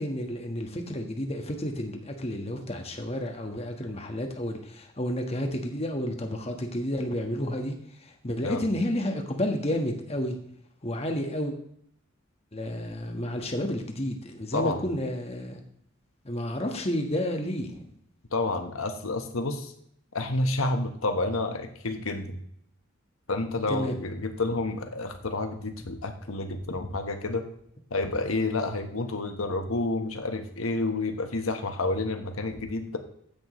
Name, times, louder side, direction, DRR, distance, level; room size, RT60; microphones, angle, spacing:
voice 1, 0.0-7.7 8.0-10.4 10.8-11.5 12.5-15.6 16.2-17.9 23.7-24.0, left 1 dB, 30° left, 4 dB, 1.4 m, -31 dB
voice 2, 18.3-19.7 20.1-22.4 23.3-27.4 27.9-33.0, left 2 dB, 85° left, 6 dB, 1.3 m, -29 dB
15.0 x 10.5 x 3.2 m, 0.70 s
head